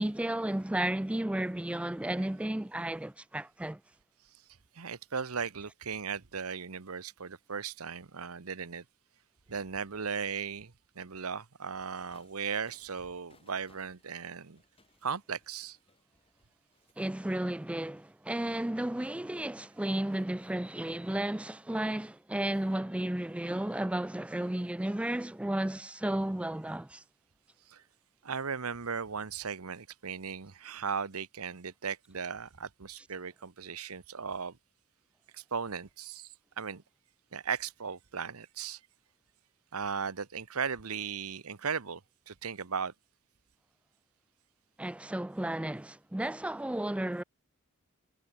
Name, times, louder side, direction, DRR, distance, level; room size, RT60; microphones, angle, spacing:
voice 1, 0.0-3.8 17.0-27.0 44.8-47.2, right 1 dB, 5° right, 0.3 m, -33 dB
voice 2, 4.7-8.8 9.5-14.6 15.0-15.8 27.7-27.8 28.2-34.6 35.3-36.8 37.3-38.8 39.7-42.0 42.3-42.9, right 6 dB, 80° right, 1.0 m, -37 dB
sound 1, 12.1-16.9, left 3 dB, 25° left, 7.1 m, -67 dB
head